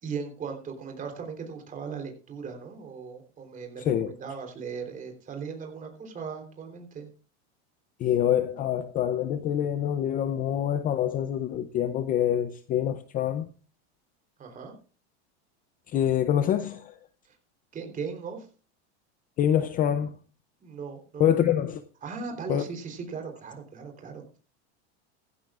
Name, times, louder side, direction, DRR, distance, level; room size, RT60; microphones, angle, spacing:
voice 1, 0.0-7.1 14.4-14.7 17.2-17.4 17.7-18.5 20.6-21.4 22.0-24.4, right 5 dB, 25° right, 3.6 m, -38 dB
voice 2, 8.0-13.5 15.9-16.9 19.4-20.1 21.2-21.8 22.5-22.6, left 10 dB, 25° left, 0.5 m, -25 dB
15.5 x 15.5 x 2.4 m
supercardioid pair, 150°, 34 cm